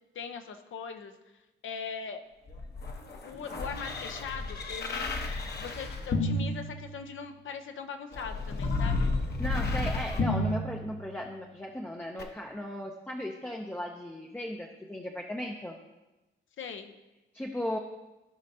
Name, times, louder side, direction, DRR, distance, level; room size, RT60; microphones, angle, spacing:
voice 1, 0.1-1.1 1.6-2.2 3.2-5.0 5.6-9.1 16.6-16.9, left 6 dB, 70° left, 6 dB, 0.8 m, -40 dB
sound 1, 2.5-7.4 8.1-11.4 12.2-12.3, left 2 dB, 50° left, 1.1 m, -32 dB
voice 2, 9.4-15.8 17.3-17.8, left 1 dB, 10° left, 0 dB, 0.6 m, -36 dB
15.5 x 5.4 x 2.8 m, 1.1 s
wide cardioid pair, 125°, 21 cm